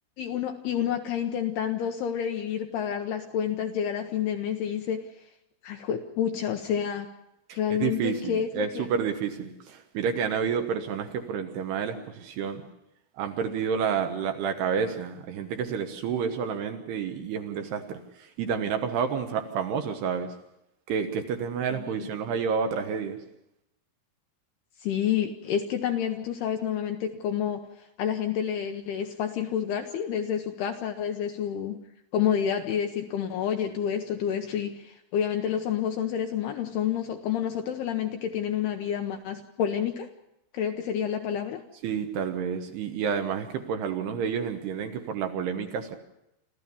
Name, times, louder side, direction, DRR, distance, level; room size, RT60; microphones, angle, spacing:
voice 1, 0.2-5.1 5.6-7.1 7.5-8.9 21.8-22.1 24.8-27.6 28.0-31.8 32.1-40.1 40.5-41.6, left 9 dB, 80° left, 5 dB, 2.4 m, -29 dB
voice 2, 7.5-12.6 13.2-20.3 20.9-23.2 41.8-46.0, right 6 dB, 70° right, 6 dB, 2.9 m, -30 dB
27.5 x 14.5 x 7.0 m, 0.85 s
omnidirectional pair, 5.7 m